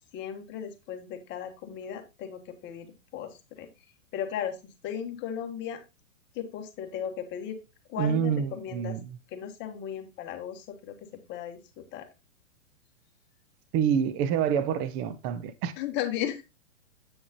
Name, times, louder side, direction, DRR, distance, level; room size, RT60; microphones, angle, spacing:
voice 1, 0.1-2.9 3.1-3.7 4.1-4.6 4.8-5.8 6.3-7.6 7.9-9.0 9.3-12.1 15.8-16.4, left 9 dB, 30° left, 1.3 m, -36 dB
voice 2, 8.0-9.0 13.7-15.7, right 8 dB, 20° right, 0.4 m, -27 dB
8.1 x 6.1 x 2.8 m
hypercardioid pair, 130°, 39 cm